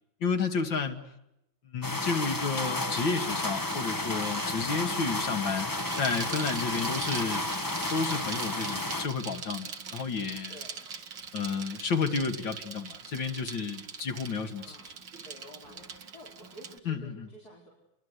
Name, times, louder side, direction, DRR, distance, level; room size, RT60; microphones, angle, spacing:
voice 1, 0.2-1.0 1.6-5.7 5.9-7.4 7.9-10.6 11.3-14.9 16.9-17.3, left 5 dB, 70° left, 6 dB, 2.8 m, -31 dB
sound 1, 1.8-9.1, left 2 dB, 20° left, 0.5 m, -32 dB
Bicycle, 3.2-16.8, right 6 dB, 70° right, 2.3 m, -42 dB
voice 2, 10.5-10.9 14.5-17.7, equal, 50° left, -3 dB, 5.5 m, -51 dB
30.0 x 23.5 x 8.2 m, 0.86 s
omnidirectional pair, 2.1 m